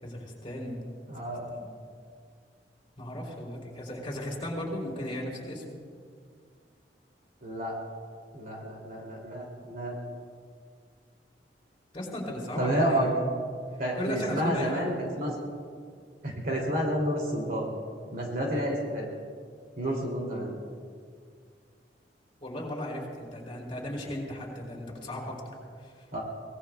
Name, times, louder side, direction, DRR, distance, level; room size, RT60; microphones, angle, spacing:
voice 1, 0.0-0.8 1.5-1.7 3.0-5.7 11.9-13.1 13.9-15.0 22.4-25.4 25.8-26.1, left 1 dB, 30° left, -3 dB, 4.4 m, -36 dB
voice 2, 1.1-1.5 7.4-7.8 8.3-10.0 12.6-13.1 13.8-15.4 16.2-17.7 18.1-19.2 19.8-20.5 26.1-26.2, equal, 50° right, -1 dB, 2.7 m, -30 dB
23.5 x 19.0 x 2.3 m, 2.1 s
head